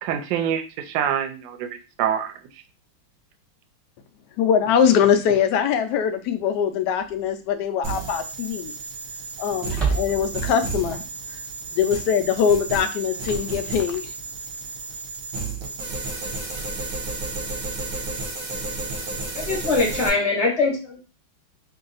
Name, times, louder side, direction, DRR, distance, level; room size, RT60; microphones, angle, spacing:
voice 1, 0.0-2.3, right 9 dB, 75° right, 7 dB, 1.2 m, -26 dB
voice 2, 4.4-8.7 9.4-11.0 11.7-14.1, left 8 dB, 70° left, 7 dB, 1.0 m, -22 dB
sound 1, 7.0-7.4 7.7-7.8 9.6-10.5, right 4 dB, ahead, 0.4 m, -28 dB
sound 2, 7.8-20.1, right 3 dB, 55° right, 1.1 m, -32 dB
voice 3, 19.3-21.1, left 3 dB, 45° left, -1 dB, 1.0 m, -22 dB
3.1 x 2.7 x 3.9 m, 0.33 s
omnidirectional pair, 2.1 m